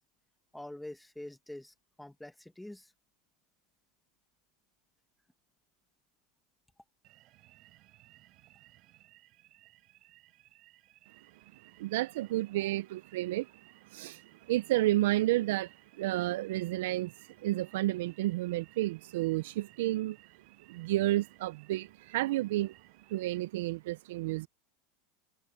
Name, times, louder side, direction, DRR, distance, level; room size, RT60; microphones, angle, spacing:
voice 1, 0.5-2.9, left 1 dB, 5° left, 1.8 m, -46 dB
sound 1, 7.0-23.4, right 17 dB, 50° right, 4.2 m, -61 dB
voice 2, 11.8-13.5 13.9-14.2 14.5-17.1 17.4-20.2 20.7-22.7 23.1-24.5, right 16 dB, 75° right, 0.5 m, -31 dB
supercardioid pair, 125°, 0 cm